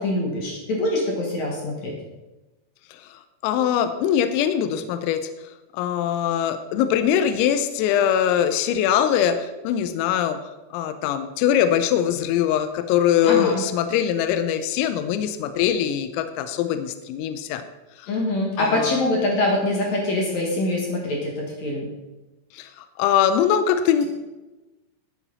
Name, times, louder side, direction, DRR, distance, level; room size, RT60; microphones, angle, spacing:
voice 1, 0.0-1.9 13.2-13.6 18.1-21.9, left 1 dB, 60° left, -1 dB, 1.9 m, -24 dB
voice 2, 2.9-5.3 5.7-10.4 10.7-17.6 18.0-18.1 18.6-19.0 22.5-24.1, left 9 dB, 85° left, 10 dB, 3.3 m, -22 dB
12.5 x 8.8 x 4.1 m, 1.1 s
omnidirectional pair, 6.0 m